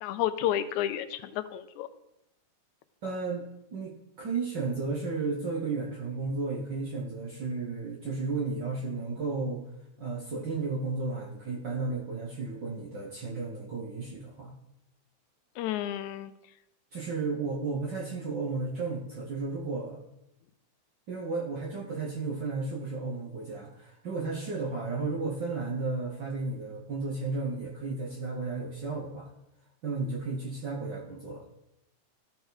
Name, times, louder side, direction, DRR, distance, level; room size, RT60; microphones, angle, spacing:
voice 1, 0.0-1.9 15.6-16.3, left 11 dB, 90° left, 12 dB, 2.0 m, -31 dB
voice 2, 3.0-3.4 3.7-9.6 10.0-14.5 16.9-20.0 21.1-29.3 29.8-31.4, right 3 dB, 60° right, -3 dB, 1.2 m, -33 dB
13.5 x 4.9 x 4.0 m, 0.85 s
omnidirectional pair, 3.3 m